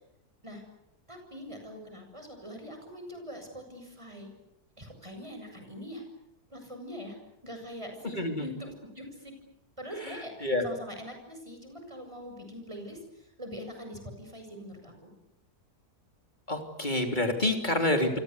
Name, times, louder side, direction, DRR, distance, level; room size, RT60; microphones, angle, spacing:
voice 1, 1.1-4.3 4.8-6.0 6.5-7.2 7.4-9.3 9.8-15.1, equal, 20° right, 4 dB, 7.3 m, -43 dB
voice 2, 16.5-18.2, left 1 dB, 30° left, 4 dB, 3.6 m, -27 dB
29.0 x 25.0 x 8.1 m, 0.81 s
omnidirectional pair, 1.7 m